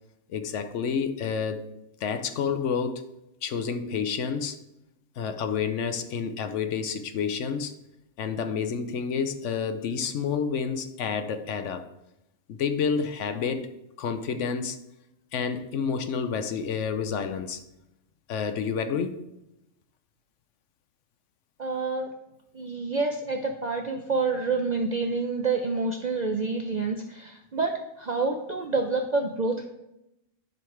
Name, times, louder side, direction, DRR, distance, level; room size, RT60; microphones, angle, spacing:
voice 1, 0.3-1.6 2.0-3.0 3.4-4.6 5.2-7.7 8.2-11.9 12.5-13.7 14.0-14.8 15.3-17.6 18.3-19.2, left 6 dB, 70° left, 1.0 m, -29 dB
voice 2, 21.6-22.1 22.5-27.7 28.0-29.7, right 3 dB, 50° right, 0.5 m, -28 dB
10.5 x 5.4 x 3.2 m
omnidirectional pair, 1.4 m